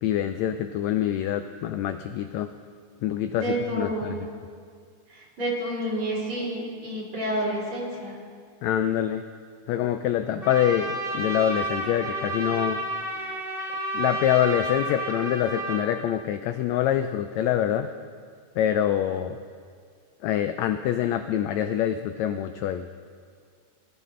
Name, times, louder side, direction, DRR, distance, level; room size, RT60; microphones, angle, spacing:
voice 1, 0.0-2.5 3.0-4.1 8.6-9.2 9.7-12.8 13.9-17.9 18.6-19.4 20.2-22.9, left 10 dB, 85° left, 9 dB, 1.6 m, -25 dB
voice 2, 3.3-4.1 5.1-8.2 10.3-10.5, right 1 dB, 45° right, -6 dB, 4.0 m, -29 dB
Trumpet, 10.4-15.9, right 1 dB, 20° right, 1.6 m, -31 dB
21.0 x 15.0 x 3.2 m, 2.1 s
omnidirectional pair, 3.6 m